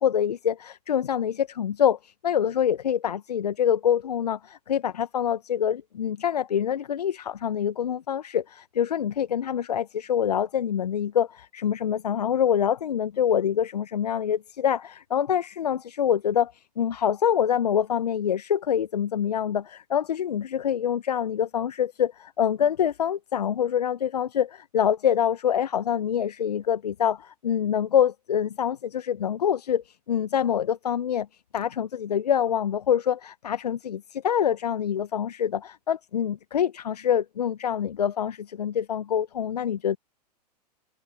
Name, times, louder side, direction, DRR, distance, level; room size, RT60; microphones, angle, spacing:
voice 1, 0.0-31.3 31.5-40.0, left 9 dB, 70° left, 1.1 m, -25 dB
figure-of-eight pair, 100°, 21 cm